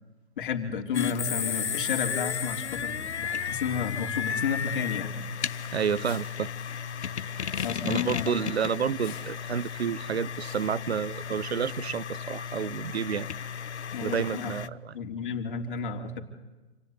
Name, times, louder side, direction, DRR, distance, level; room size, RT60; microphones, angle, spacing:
voice 1, 0.4-5.1 7.6-8.4 13.9-14.5 14.9-16.2, left 6 dB, 50° left, 3.6 m, -32 dB
sound 1, 0.9-14.7, left 7 dB, 75° left, 1.0 m, -34 dB
sound 2, 5.4-11.6, left 10 dB, 25° left, 5.7 m, -52 dB
voice 2, 5.7-6.5 7.8-13.3 14.0-14.9, right 8 dB, 65° right, 0.9 m, -30 dB
27.5 x 17.5 x 9.7 m
hypercardioid pair, 140°, 34 cm